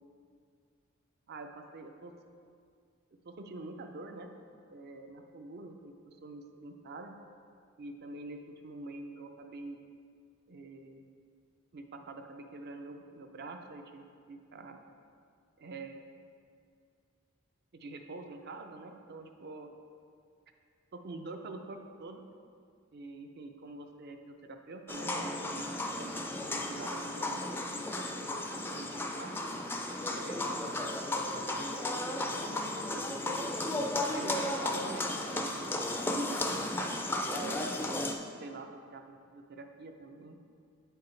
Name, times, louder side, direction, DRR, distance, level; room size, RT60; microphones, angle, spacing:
voice 1, 1.3-2.1 3.2-4.3 4.7-7.2 7.8-9.8 10.5-11.1 11.7-14.8 15.6-16.0 17.7-19.7 20.9-22.2 22.9-26.2 26.5-27.5 27.7-28.4 28.7-29.3 30.1-33.4 34.1-35.7 36.1-36.7 37.2-38.1 38.4-40.4, right 2 dB, 55° right, 5 dB, 0.5 m, -46 dB
sound 1, 24.9-38.2, left 1 dB, 10° left, 0.3 m, -34 dB
7.5 x 4.7 x 3.2 m, 2.2 s
head